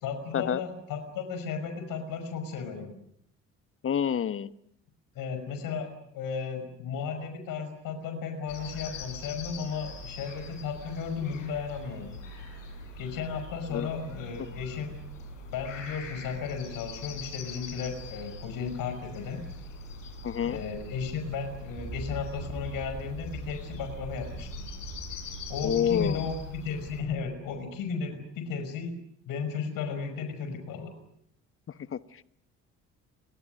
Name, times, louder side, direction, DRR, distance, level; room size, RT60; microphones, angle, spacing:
voice 1, 0.0-2.9 5.2-12.1 13.0-15.0 15.5-19.4 20.4-24.7 25.5-29.0 29.3-30.9, left 5 dB, 60° left, 8 dB, 5.7 m, -34 dB
voice 2, 3.8-4.5 13.7-13.9 20.2-20.6 25.6-26.3 31.9-32.3, left 8 dB, 35° left, 14 dB, 1.2 m, -28 dB
sound 1, 8.5-27.0, left 2 dB, 80° left, 6.7 m, -42 dB
sound 2, 21.7-27.9, right 2 dB, 25° right, 4.5 m, -43 dB
29.5 x 25.0 x 6.6 m, 0.71 s
figure-of-eight pair, 50°, 38 cm